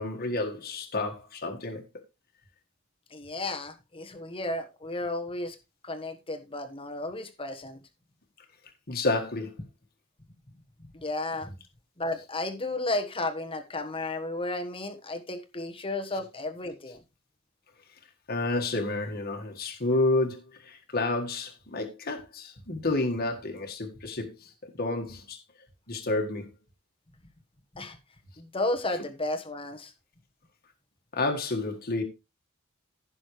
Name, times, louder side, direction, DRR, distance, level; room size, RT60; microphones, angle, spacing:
voice 1, 0.0-1.8 8.9-9.6 18.3-25.4 25.9-26.5 31.1-32.0, left 2 dB, 50° left, 1.7 m, -30 dB
voice 2, 3.1-5.6 5.8-7.8 10.9-11.5 12.0-17.0 27.7-28.0 28.4-29.9, left 2 dB, 25° left, 1.3 m, -33 dB
15.0 x 6.3 x 3.2 m
head